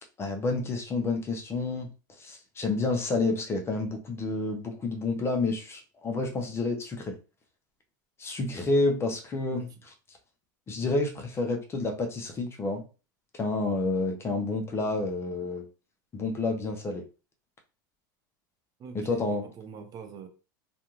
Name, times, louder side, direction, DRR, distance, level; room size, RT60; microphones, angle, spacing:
voice 1, 0.2-1.9 2.2-7.1 8.2-9.7 10.7-12.8 13.3-15.6 16.1-17.0 18.9-19.4, left 3 dB, 25° left, 4 dB, 0.6 m, -29 dB
voice 2, 18.8-20.3, right 6 dB, 35° right, 6 dB, 0.7 m, -43 dB
2.4 x 2.3 x 3.0 m, 0.32 s
supercardioid pair, 115°, 11 cm